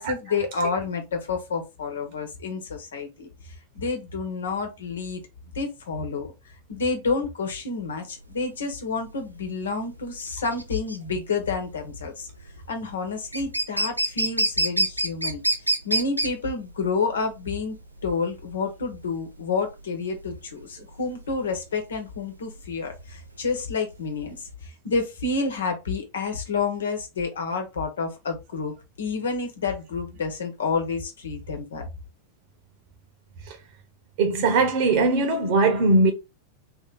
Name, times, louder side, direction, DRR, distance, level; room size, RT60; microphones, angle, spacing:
voice 1, 0.0-3.3 3.7-5.2 5.5-6.3 6.7-12.3 12.7-15.4 15.8-17.8 18.0-24.4 24.6-31.9, left 4 dB, 65° left, 1.1 m, -29 dB
sound 1, 8.2-24.5, right 1 dB, 85° right, 0.5 m, -29 dB
voice 2, 34.2-36.1, right 3 dB, 45° right, 1.1 m, -20 dB
3.2 x 2.9 x 4.0 m
figure-of-eight pair, 90°, 0 cm